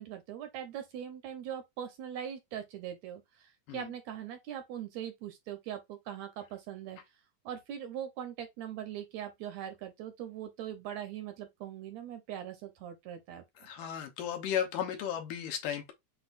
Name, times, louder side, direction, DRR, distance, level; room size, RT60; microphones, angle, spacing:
voice 1, 0.0-7.0 7.5-13.4, right 10 dB, 70° right, 1.8 m, -41 dB
voice 2, 13.6-15.9, left 9 dB, 80° left, 2.7 m, -34 dB
7.8 x 2.6 x 2.5 m
omnidirectional pair, 3.7 m